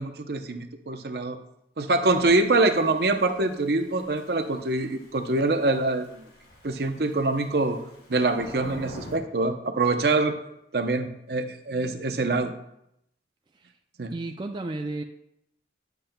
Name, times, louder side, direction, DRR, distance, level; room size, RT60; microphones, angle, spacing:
voice 1, 0.0-1.4 1.8-6.3 6.6-7.8 8.1-10.4 10.7-12.5 14.0-14.1, right 2 dB, 60° right, 6 dB, 0.6 m, -25 dB
Thunder / Rain, 2.0-9.2, equal, 70° left, 2.5 m, -46 dB
voice 2, 14.1-15.0, right 2 dB, 25° right, 3 dB, 0.3 m, -33 dB
10.0 x 7.8 x 2.2 m, 0.80 s
head